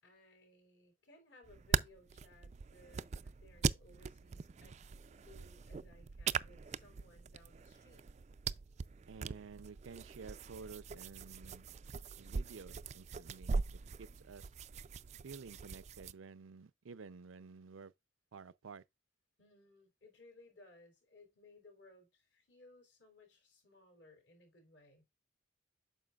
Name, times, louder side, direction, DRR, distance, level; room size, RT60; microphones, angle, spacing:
voice 1, 0.0-8.1 19.4-25.0, left 2 dB, 65° left, 3.8 m, -62 dB
sound 1, 1.4-16.1, right 5 dB, 35° right, 0.3 m, -41 dB
voice 2, 9.1-11.7 12.2-14.5 15.2-17.9 18.3-18.8, right 5 dB, 90° right, 0.5 m, -52 dB
9.2 x 6.4 x 2.4 m
head